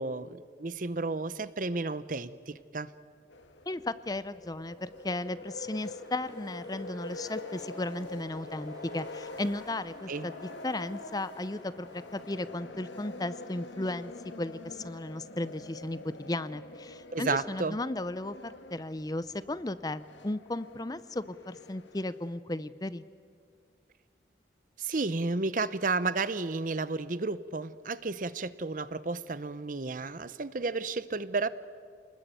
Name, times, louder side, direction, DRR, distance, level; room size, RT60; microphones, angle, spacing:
voice 1, 0.0-2.9 10.1-10.3 17.1-17.8 24.8-31.5, right 3 dB, 45° right, 15 dB, 0.8 m, -32 dB
sound 1, 3.3-22.4, left 2 dB, 90° left, 1.6 m, -46 dB
voice 2, 3.7-10.3 10.6-14.1 14.4-23.0, left 2 dB, 20° left, 15 dB, 0.6 m, -35 dB
Wind, 4.5-14.4, right 1 dB, 20° right, 2.4 m, -57 dB
28.5 x 20.5 x 9.1 m, 2.2 s
head